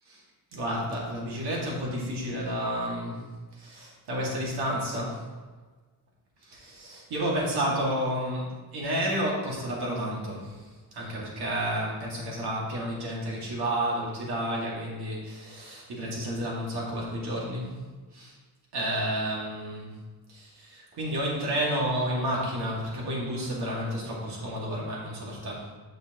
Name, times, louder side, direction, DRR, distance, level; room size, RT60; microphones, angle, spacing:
voice 1, 0.5-3.2 3.5-5.2 6.4-17.7 18.1-18.4 18.7-19.9 20.3-25.6, equal, 80° right, -4 dB, 2.5 m, -31 dB
8.7 x 6.6 x 3.1 m, 1.4 s
wide cardioid pair, 170°, 38 cm